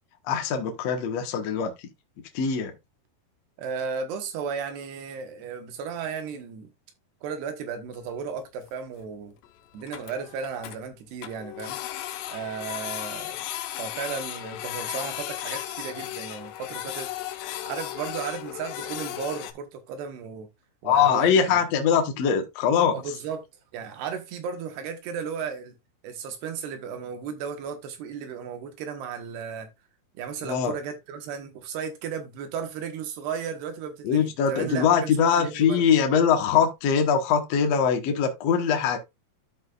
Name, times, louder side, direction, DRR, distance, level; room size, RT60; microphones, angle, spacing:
voice 1, 0.3-1.7 2.3-2.7 20.8-23.0 30.4-30.7 34.0-39.0, left 7 dB, 65° left, 1.7 m, -22 dB
voice 2, 3.6-6.7 7.2-9.3 9.7-11.8 12.3-13.4 13.8-17.1 17.6-20.5 20.8-21.6 22.9-23.4 23.7-25.7 26.0-29.7 30.1-35.9, right 6 dB, 75° right, 3.4 m, -35 dB
Printer, 7.9-8.0 8.2-8.3 8.7-8.8 9.0-9.1 9.4-9.5 9.7-10.8 11.2-19.5, left 13 dB, 85° left, 3.0 m, -35 dB
12.5 x 5.5 x 2.4 m
omnidirectional pair, 4.9 m